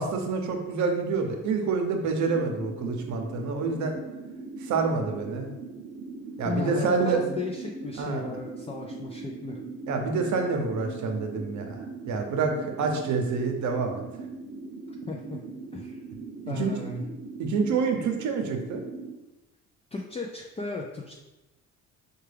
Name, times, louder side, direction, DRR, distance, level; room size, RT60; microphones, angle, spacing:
voice 1, 0.0-3.9 4.6-5.5 6.4-7.2 8.0-8.2 9.9-11.7 12.1-14.0 16.5-16.8 17.4-18.8, right 4 dB, 70° right, 4 dB, 0.7 m, -27 dB
sound 1, 2.3-19.2, right 4 dB, 35° right, 0.6 m, -40 dB
voice 2, 6.5-9.6 14.9-15.4 15.7-16.0 16.5-17.0 19.9-21.1, left 3 dB, 20° left, 0 dB, 0.3 m, -35 dB
4.6 x 2.3 x 3.3 m, 1.0 s
cardioid pair, 90°, 30 cm